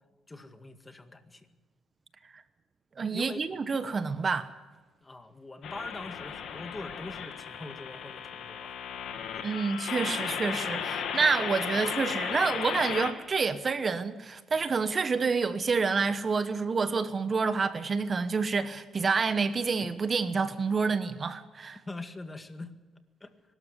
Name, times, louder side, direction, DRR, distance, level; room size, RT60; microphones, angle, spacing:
voice 1, 0.3-1.5 3.1-3.4 5.0-8.7 9.3-9.5 10.8-10.9 21.9-22.7 23.2-23.3, left 2 dB, 20° left, 2.0 m, -43 dB
voice 2, 3.0-4.5 9.4-21.8, right 4 dB, 40° right, 1.1 m, -28 dB
sound 1, 5.6-13.1, left 7 dB, 75° left, 2.5 m, -35 dB
23.5 x 13.0 x 9.7 m
cardioid pair, 90°, 0 cm